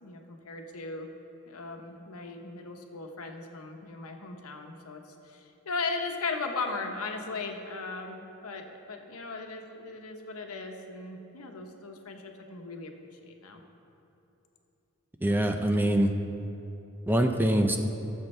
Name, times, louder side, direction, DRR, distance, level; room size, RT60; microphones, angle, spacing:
voice 1, 0.0-1.1 1.5-8.6 8.9-13.6, left 3 dB, 80° left, 3 dB, 1.0 m, -37 dB
voice 2, 15.2-16.1 17.1-17.8, right 1 dB, 10° right, 5 dB, 0.4 m, -24 dB
17.5 x 7.4 x 3.3 m, 3.0 s
head